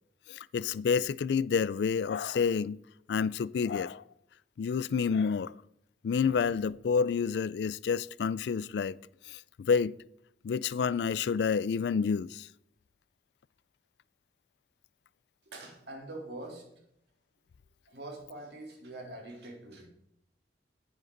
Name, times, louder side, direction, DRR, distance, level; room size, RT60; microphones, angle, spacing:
voice 1, 0.3-2.8 3.1-4.0 4.6-5.5 6.0-9.0 9.3-10.0 10.4-12.5, left 6 dB, 70° left, 0.3 m, -29 dB
voice 2, 15.4-16.7 17.9-19.9, right 2 dB, 70° right, 3.4 m, -44 dB
11.0 x 9.4 x 3.9 m
head